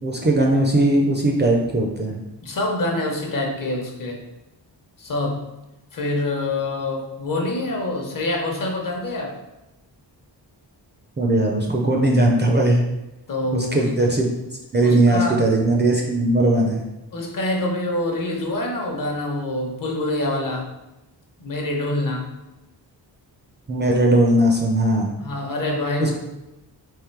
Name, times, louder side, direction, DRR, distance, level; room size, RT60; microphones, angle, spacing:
voice 1, 0.0-2.2 11.2-12.8 13.5-14.3 14.7-16.8 23.7-25.1 26.0-26.1, right 1 dB, 25° right, -1 dB, 0.4 m, -19 dB
voice 2, 2.4-4.2 5.0-5.4 5.9-9.4 13.3-13.9 14.8-15.5 17.1-20.7 21.4-22.3 25.2-26.1, left 1 dB, 50° left, 1 dB, 0.8 m, -26 dB
3.6 x 3.0 x 4.5 m, 0.96 s
wide cardioid pair, 180°, 43 cm